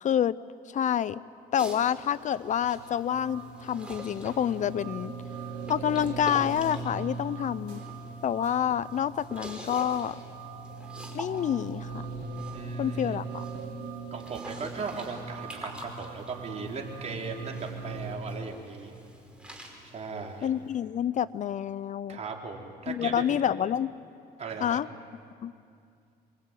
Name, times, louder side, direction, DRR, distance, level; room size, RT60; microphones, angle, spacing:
voice 1, 0.0-0.4 0.7-1.2 1.5-5.1 5.7-7.8 8.2-10.2 11.1-12.1 12.8-13.4 20.4-22.2 22.9-23.9 24.6-24.9 25.4-25.5, left 9 dB, 45° left, 17 dB, 0.6 m, -28 dB
sound 1, 1.6-20.8, equal, 5° right, 5.2 m, -46 dB
sound 2, 2.7-18.2, right 4 dB, 85° right, 3.8 m, -40 dB
voice 2, 12.5-13.2 14.1-18.9 19.8-20.5 22.1-23.4 24.4-24.8, right 4 dB, 40° right, 1 dB, 4.3 m, -38 dB
27.5 x 23.0 x 9.2 m, 2.4 s
cardioid pair, 110°, 17 cm